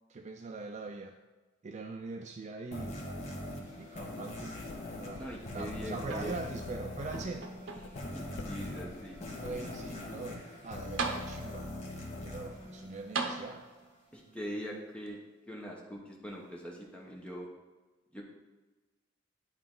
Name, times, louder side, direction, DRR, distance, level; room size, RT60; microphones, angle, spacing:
voice 1, 0.1-1.2 1.6-3.0 3.7-4.5 5.0-7.5 9.3-11.7 12.2-13.7, right 3 dB, 35° right, 5 dB, 0.4 m, -42 dB
sound 1, 2.7-13.5, left 1 dB, 35° left, 1.4 m, -42 dB
Writing, 4.2-10.3, left 4 dB, 70° left, 0.4 m, -51 dB
voice 2, 5.2-6.4 7.8-9.2 9.6-9.7 14.1-15.2 15.5-17.5 18.1-18.2, equal, 5° left, -2 dB, 1.1 m, -42 dB
sound 2, 6.0-6.7 7.1-8.1 8.8-8.9 10.5-10.6 11.0-11.7 13.1-14.0 15.1-15.2, right 4 dB, 80° right, 0.8 m, -38 dB
10.5 x 3.8 x 3.8 m, 1.2 s
head